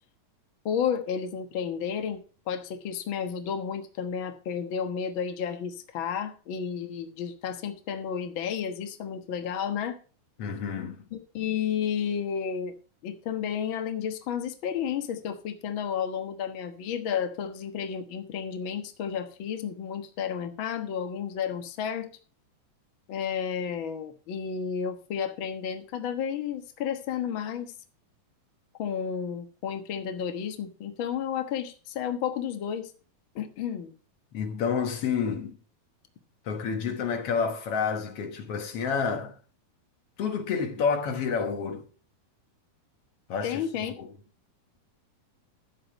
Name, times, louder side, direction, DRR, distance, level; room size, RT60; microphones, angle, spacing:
voice 1, 0.6-10.0 11.1-12.7 13.0-22.1 23.1-27.7 28.8-32.9 33.3-33.9 43.4-43.9, left 7 dB, 85° left, 1.1 m, -32 dB
voice 2, 10.4-11.0 34.3-35.6 36.4-39.4 40.2-41.8 43.3-43.6 44.0-44.1, left 6 dB, 65° left, 1.5 m, -29 dB
12.5 x 8.1 x 4.5 m
omnidirectional pair, 4.3 m